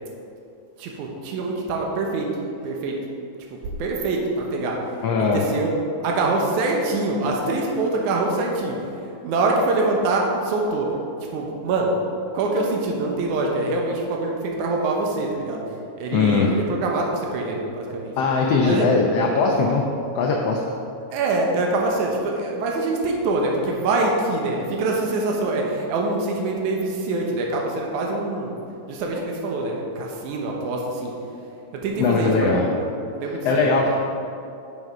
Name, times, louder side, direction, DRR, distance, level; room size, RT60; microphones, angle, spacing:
voice 1, 0.8-2.3 2.6-3.0 3.6-4.8 5.2-5.7 6.0-10.9 11.3-11.9 12.3-15.6 16.0-18.1 18.6-18.9 21.1-28.5 28.9-31.1 31.7-32.8 33.1-33.9, right 2 dB, 85° right, 0 dB, 2.5 m, -24 dB
voice 2, 5.0-5.4 16.1-16.5 18.2-19.9 20.1-20.6 32.0-32.6 33.4-33.9, left 4 dB, 70° left, 0 dB, 1.6 m, -20 dB
11.0 x 6.9 x 4.8 m, 2.7 s
omnidirectional pair, 3.4 m